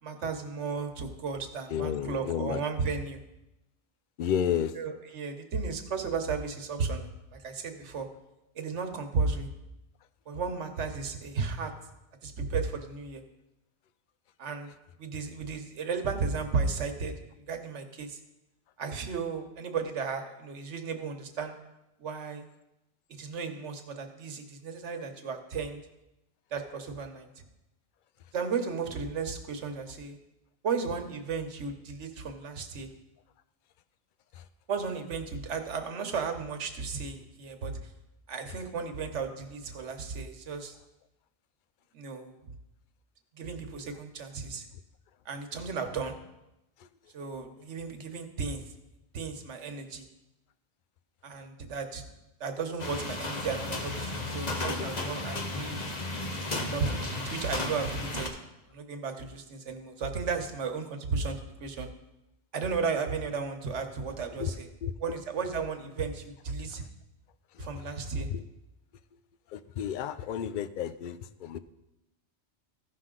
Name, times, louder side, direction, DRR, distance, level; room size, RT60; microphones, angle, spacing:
voice 1, 0.0-3.2 4.7-8.1 8.5-9.5 10.3-11.7 12.2-13.2 14.4-14.7 15.0-17.1 17.5-18.2 18.8-21.6 22.0-22.4 23.1-25.8 26.5-27.3 28.3-30.2 30.6-32.9 34.7-37.7 38.3-40.8 41.9-42.3 43.4-44.7 45.2-46.2 47.1-48.6 49.1-50.1 51.2-52.0 52.4-55.9 56.6-58.3 58.7-61.9 62.5-64.7 65.0-66.8 67.6-68.3, right 5 dB, 85° right, 6 dB, 1.3 m, -34 dB
voice 2, 1.7-2.6 4.2-4.7 64.4-64.5 64.8-65.2 67.6-67.7 68.2-68.4 69.5-71.6, left 9 dB, 60° left, 12 dB, 0.6 m, -31 dB
sound 1, 52.8-58.3, left 2 dB, 40° left, 1.0 m, -34 dB
15.0 x 5.9 x 3.8 m, 0.92 s
omnidirectional pair, 1.2 m